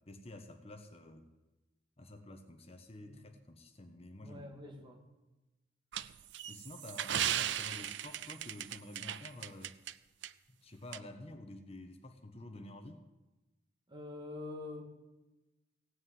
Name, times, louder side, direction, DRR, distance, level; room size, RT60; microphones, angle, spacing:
voice 1, 0.1-1.3 2.0-4.5 6.5-9.8 10.6-13.0, left 1 dB, 35° left, 6 dB, 1.1 m, -50 dB
voice 2, 4.1-5.0 13.9-14.8, left 2 dB, 25° right, 2 dB, 2.2 m, -46 dB
sound 1, 5.9-9.9 10.2-10.3 10.9-11.0, right 10 dB, 90° right, 0.5 m, -37 dB
16.5 x 6.4 x 9.4 m, 1.1 s
head